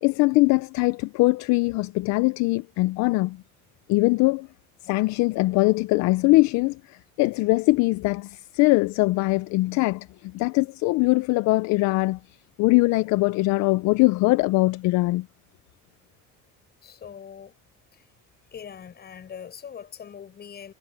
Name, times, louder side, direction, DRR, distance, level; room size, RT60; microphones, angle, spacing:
voice 1, 0.0-3.4 3.9-4.5 4.9-12.2 12.6-15.3, left 22 dB, 60° left, 0.6 m, -22 dB
voice 2, 16.8-17.6 17.9-18.1 18.5-20.7, left 8 dB, 30° left, 6.2 m, -42 dB
cardioid pair, 150°, 33 cm